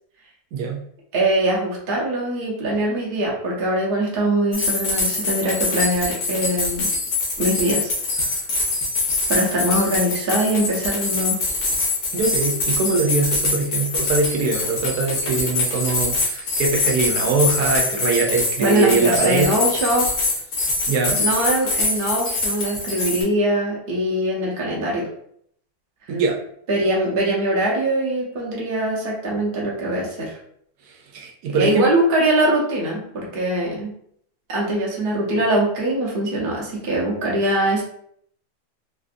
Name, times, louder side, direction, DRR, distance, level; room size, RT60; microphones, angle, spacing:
voice 1, 0.5-0.8 12.1-19.5 20.9-21.2 26.1-26.4 30.8-31.9, right 4 dB, 80° right, 0 dB, 1.2 m, -22 dB
voice 2, 1.1-6.9 7.4-7.9 9.3-11.4 18.6-20.1 21.2-25.1 26.7-30.4 31.5-33.9 34.5-37.8, right 1 dB, 40° right, -4 dB, 0.8 m, -22 dB
sound 1, 4.5-23.2, left 3 dB, 85° left, 1.5 m, -24 dB
3.4 x 2.5 x 2.5 m, 0.67 s
omnidirectional pair, 1.7 m